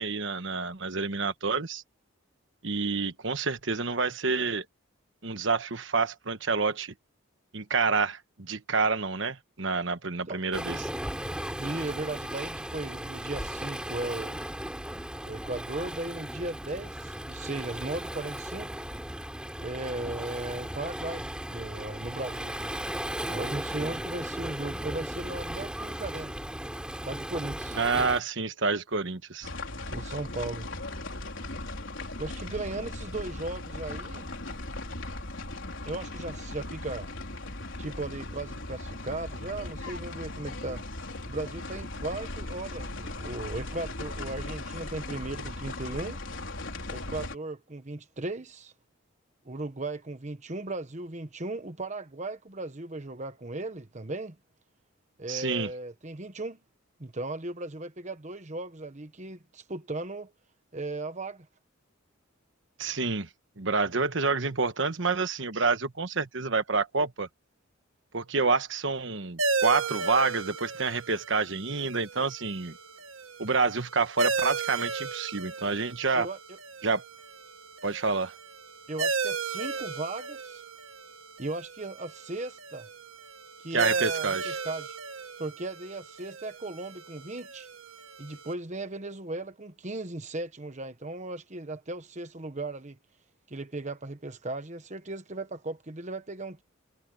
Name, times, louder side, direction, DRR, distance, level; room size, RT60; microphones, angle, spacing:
voice 1, 0.0-1.8 2.6-4.6 5.2-6.9 7.5-10.9 27.7-29.5 55.3-55.7 62.8-63.3 63.6-67.3 68.1-72.8 73.4-76.3 76.8-77.0 77.8-78.3 83.7-84.6, right 4 dB, 60° right, 1.2 m, -28 dB
Waves surf, 10.5-28.2, equal, 5° right, 3.3 m, -36 dB
voice 2, 11.6-14.4 15.2-18.7 19.6-21.2 21.5-22.7 23.3-26.4 27.0-27.8 29.9-30.7 32.2-34.3 35.8-37.1 37.8-40.8 41.3-46.2 46.9-48.7 49.4-54.4 55.2-56.6 57.0-60.3 60.7-61.5 76.1-76.4 78.9-80.6 81.4-82.9 83.6-85.0 85.4-87.7 88.2-93.0 93.5-96.6, right 2 dB, 35° right, 1.1 m, -37 dB
sound 1, 29.4-47.4, left 2 dB, 65° left, 4.7 m, -38 dB
sound 2, 69.4-88.5, right 4 dB, 80° right, 1.7 m, -35 dB
head